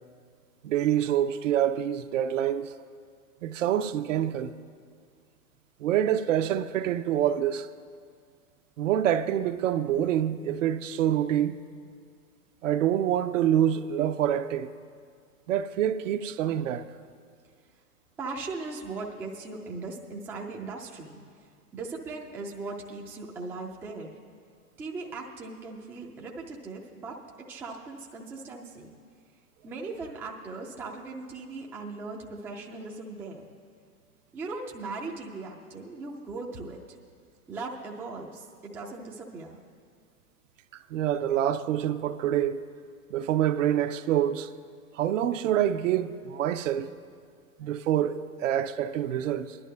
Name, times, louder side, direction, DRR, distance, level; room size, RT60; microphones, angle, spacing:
voice 1, 0.6-2.7 3.4-4.5 5.8-7.7 8.8-11.6 12.6-14.7 15.5-16.9 40.9-42.6 43.1-44.5 45.0-46.9 47.6-49.6, right 10 dB, 55° right, 0.6 m, -26 dB
voice 2, 18.2-21.2 21.7-24.1 24.8-27.2 27.5-28.9 29.6-33.5 34.3-36.8 37.5-39.6, right 3 dB, 5° right, 0.4 m, -38 dB
25.0 x 11.0 x 2.2 m
hypercardioid pair, 105°, 45 cm